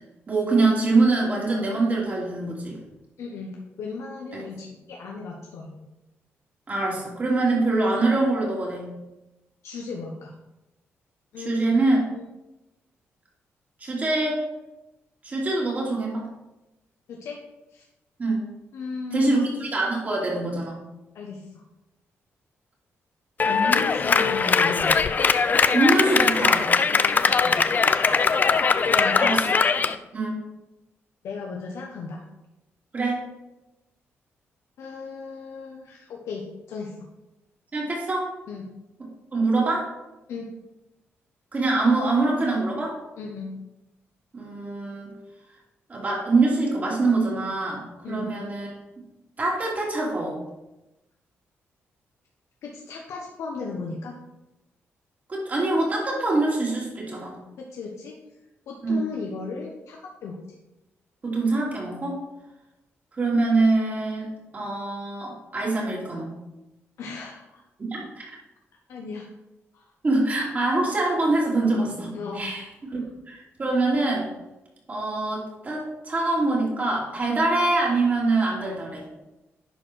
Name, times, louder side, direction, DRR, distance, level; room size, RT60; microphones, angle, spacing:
voice 1, 0.3-2.8 4.3-4.4 6.7-8.9 11.4-12.0 13.8-14.4 15.2-16.3 18.2-18.4 19.1-20.8 25.7-26.7 29.2-29.4 30.1-30.4 32.9-33.2 37.7-38.3 39.3-39.9 41.5-43.0 44.3-45.1 45.9-48.7 49.4-50.4 55.3-57.4 58.8-59.0 61.2-62.2 63.1-64.3 64.5-66.3 67.9-68.2 70.0-72.7 72.9-73.0 73.3-74.3 74.9-79.0, right 2 dB, 35° right, -4 dB, 3.2 m, -24 dB
voice 2, 3.2-5.7 9.6-10.3 11.3-11.8 12.1-12.3 17.1-17.4 17.7-17.8 18.7-19.5 21.1-21.6 23.4-25.1 26.9-27.6 28.9-29.4 31.2-32.2 34.8-36.9 38.5-38.7 40.3-40.5 43.2-43.6 48.0-48.3 52.6-54.2 57.6-58.2 58.7-60.4 67.0-67.6 68.9-69.3 69.7-69.9 72.1-72.6, left 4 dB, 85° left, -1 dB, 1.1 m, -35 dB
Clapping, 23.4-29.9, left 5 dB, 35° left, 0.5 m, -21 dB
10.5 x 4.5 x 4.6 m, 0.98 s
cardioid pair, 105°, 5 cm